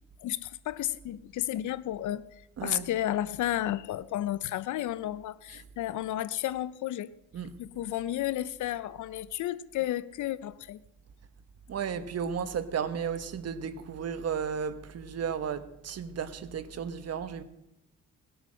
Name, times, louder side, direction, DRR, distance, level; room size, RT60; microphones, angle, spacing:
voice 1, 0.2-2.2 2.6-7.1 7.6-10.8, left 13 dB, 75° left, 18 dB, 0.7 m, -32 dB
voice 2, 2.6-2.9 7.3-7.5 11.7-17.4, right 7 dB, 55° right, 11 dB, 1.3 m, -34 dB
19.0 x 8.1 x 6.3 m, 0.88 s
cardioid pair, 90°, 30 cm